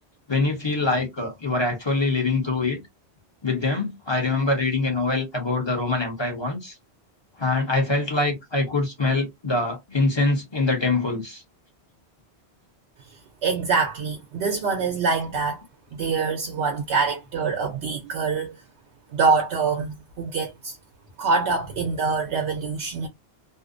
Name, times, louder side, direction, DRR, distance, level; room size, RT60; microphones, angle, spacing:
voice 1, 0.3-2.8 3.4-6.7 7.4-11.4, left 3 dB, 30° left, 0.7 m, -24 dB
voice 2, 13.4-15.6 15.9-18.6 19.1-20.8 21.2-23.1, right 4 dB, 75° right, 0.8 m, -25 dB
2.5 x 2.0 x 2.4 m
omnidirectional pair, 1.1 m